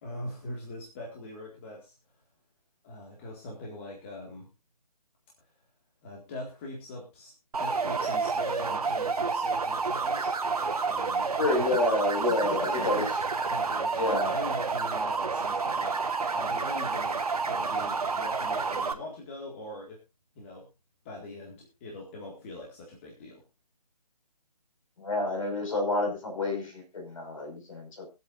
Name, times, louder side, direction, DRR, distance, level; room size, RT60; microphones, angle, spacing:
voice 1, 0.0-1.9 2.8-4.5 6.0-7.3 7.6-10.3 10.9-11.8 12.3-13.1 13.4-20.0 20.4-20.7 21.0-23.4, left 1 dB, 20° left, -2 dB, 1.9 m, -41 dB
sound 1, 7.5-18.9, right 4 dB, 65° right, 1.6 m, -29 dB
voice 2, 11.4-13.1 13.9-14.3 25.0-28.1, left 2 dB, 50° left, 3 dB, 5.4 m, -29 dB
23.5 x 7.9 x 2.5 m, 0.26 s
hypercardioid pair, 170°, 21 cm